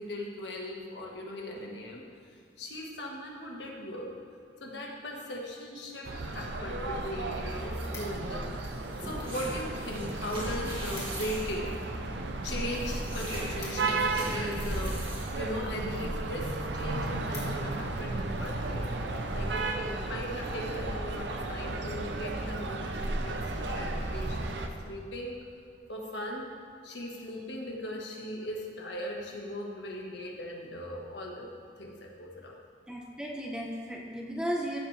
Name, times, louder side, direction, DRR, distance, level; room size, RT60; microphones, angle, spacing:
voice 1, 0.0-4.1 4.6-11.8 12.4-18.9 19.3-25.4 25.9-26.5 26.8-31.5 31.8-32.6, left 1 dB, 70° left, -1 dB, 1.7 m, -39 dB
sound 1, 6.0-24.7, right 2 dB, 75° right, 0.8 m, -34 dB
sound 2, 7.7-16.5, right 1 dB, 30° right, 2.2 m, -41 dB
sound 3, 7.9-8.5 9.2-9.7 10.0-10.2 10.4-10.5 10.7-11.4 11.7-14.6 15.3-15.6 16.1-16.2 16.6-16.7 16.9-17.9 18.4-18.6, left 3 dB, 20° left, 2.7 m, -49 dB
voice 2, 19.8-20.1 32.9-34.8, equal, 5° right, -2 dB, 1.1 m, -35 dB
15.0 x 7.2 x 3.5 m, 2.5 s
head